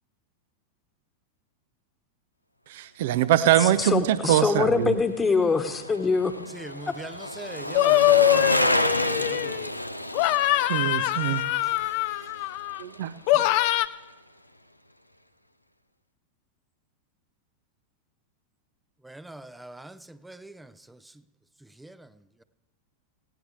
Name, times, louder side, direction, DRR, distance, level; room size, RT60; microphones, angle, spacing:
voice 1, 2.7-5.0 10.7-11.4 12.8-13.5, right 12 dB, 55° right, 0.6 m, -23 dB
voice 2, 3.6-6.4 6.9-7.0, left 4 dB, 15° left, 1.3 m, -24 dB
Bicycle, 4.7-13.1 13.4-13.5, equal, 90° left, 0.6 m, -30 dB
voice 3, 6.5-9.8 19.0-21.0 21.8-22.1, right 1 dB, 5° right, 0.6 m, -42 dB
sound 1, 7.7-9.7 10.1-12.8 13.3-13.9, left 15 dB, 45° left, 0.6 m, -23 dB
19.0 x 17.0 x 3.3 m
figure-of-eight pair, 90°, 0 cm